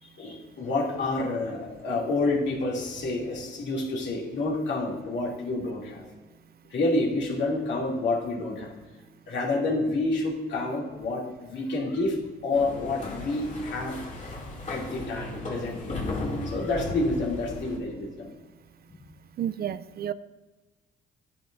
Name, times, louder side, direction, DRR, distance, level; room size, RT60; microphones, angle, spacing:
voice 1, 0.0-6.0 6.7-8.7 9.3-12.2 12.4-14.0 14.7-18.3, left 2 dB, 65° left, -3 dB, 2.8 m, -29 dB
sound 1, 12.5-17.8, left 2 dB, 40° left, 2.4 m, -35 dB
voice 2, 19.4-20.1, right 10 dB, 50° right, 14 dB, 0.4 m, -31 dB
11.5 x 10.5 x 2.6 m, 1.2 s
cardioid pair, 90°, 20 cm